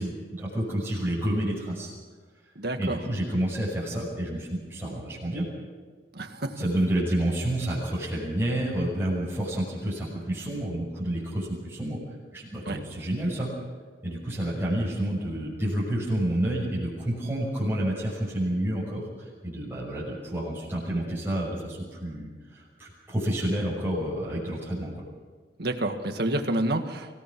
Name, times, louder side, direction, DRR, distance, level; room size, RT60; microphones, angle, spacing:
voice 1, 0.0-1.9 2.8-5.4 6.6-12.0 12.3-13.5 14.0-24.9, right 1 dB, 10° right, -9 dB, 6.3 m, -29 dB
voice 2, 2.6-3.0 6.1-6.5 12.7-12.8 25.6-27.1, right 1 dB, 60° right, 6 dB, 1.8 m, -28 dB
25.5 x 17.0 x 6.2 m, 1.5 s
head